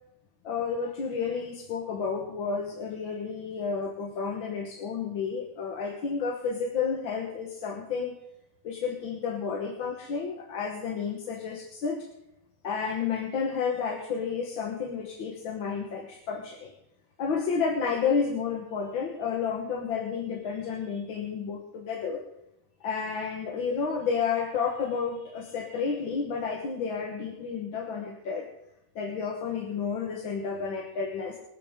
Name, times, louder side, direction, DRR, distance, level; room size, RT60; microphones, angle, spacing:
voice 1, 0.4-8.1 8.6-12.1 12.6-16.7 17.2-22.2 22.8-28.5 29.0-31.4, left 5 dB, 85° left, 2 dB, 2.2 m, -31 dB
24.5 x 8.4 x 3.7 m, 0.86 s
omnidirectional pair, 2.1 m